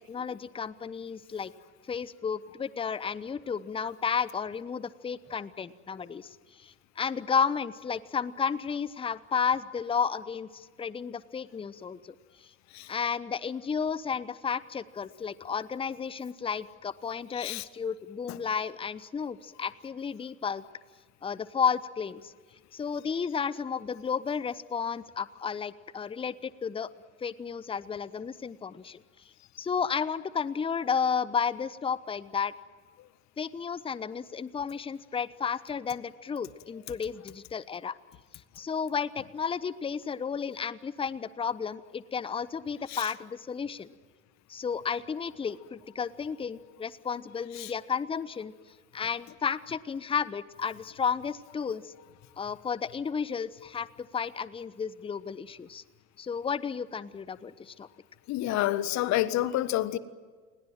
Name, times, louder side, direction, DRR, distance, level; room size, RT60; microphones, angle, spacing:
voice 1, 0.1-1.5 1.9-6.4 6.6-12.1 12.9-20.6 21.2-22.3 22.7-26.9 27.2-29.0 29.6-32.5 33.4-37.9 38.6-43.9 44.5-48.5 48.9-51.9 52.4-55.8 56.2-57.9, left 6 dB, 10° left, 18 dB, 0.9 m, -32 dB
voice 2, 58.3-60.0, left 14 dB, 40° left, 15 dB, 1.5 m, -28 dB
29.5 x 21.0 x 7.6 m, 1.5 s
figure-of-eight pair, 80°, 43 cm